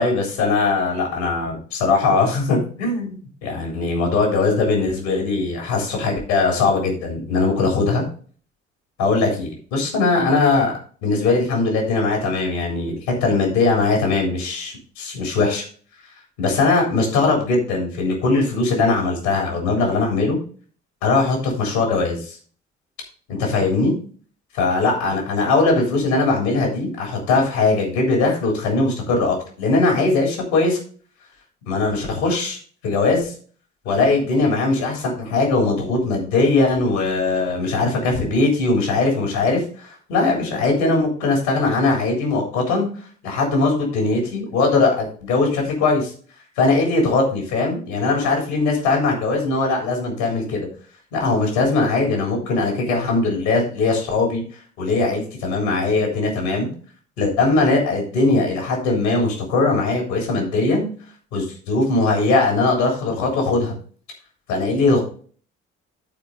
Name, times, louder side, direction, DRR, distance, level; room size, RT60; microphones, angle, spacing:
voice 1, 0.0-8.0 9.0-10.7 11.0-15.7 16.4-20.4 21.0-22.4 23.3-23.9 24.6-30.8 31.7-32.6 32.8-33.3 33.9-46.1 46.6-50.7 51.1-54.4 54.8-56.7 57.2-60.9 61.3-63.7 64.5-65.0, left 3 dB, 70° left, 1 dB, 3.5 m, -20 dB
13.5 x 4.6 x 3.9 m, 0.42 s
figure-of-eight pair, 45°, 34 cm